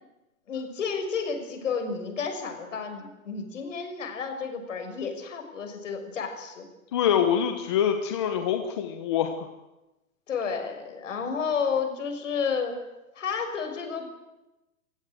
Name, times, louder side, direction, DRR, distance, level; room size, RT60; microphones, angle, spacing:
voice 1, 0.5-6.7 10.3-12.8 13.1-14.1, left 5 dB, 55° left, 5 dB, 6.4 m, -31 dB
voice 2, 6.9-9.5, left 9 dB, 20° left, 6 dB, 1.0 m, -25 dB
28.0 x 16.0 x 9.1 m, 1.0 s
hypercardioid pair, 170°, 43 cm